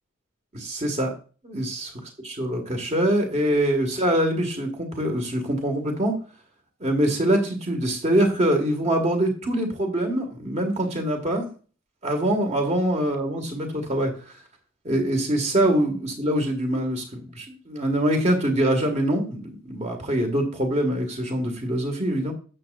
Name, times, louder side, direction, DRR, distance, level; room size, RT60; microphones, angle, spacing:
voice 1, 0.5-1.1 1.4-1.9 2.2-6.1 6.8-11.5 12.0-14.1 14.8-22.3, right 1 dB, 35° right, 4 dB, 1.9 m, -24 dB
12.0 x 7.8 x 2.6 m, 0.38 s
head